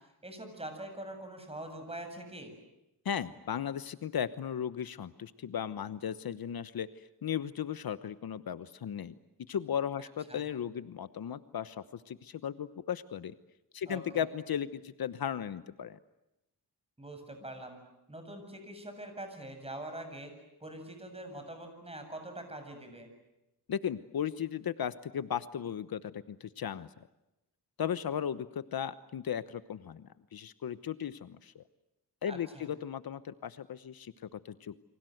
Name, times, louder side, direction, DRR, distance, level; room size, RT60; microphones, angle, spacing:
voice 1, 0.2-2.5 10.3-10.4 13.9-14.3 17.0-17.8 18.1-20.3 20.6-23.1 32.2-32.7, right 1 dB, 15° right, 6 dB, 7.7 m, -44 dB
voice 2, 3.0-9.1 9.5-13.3 13.7-16.0 23.7-26.9 27.8-31.6 32.2-34.7, left 8 dB, 65° left, 14 dB, 1.1 m, -36 dB
29.5 x 25.0 x 7.9 m, 0.92 s
cardioid pair, 100°, 39 cm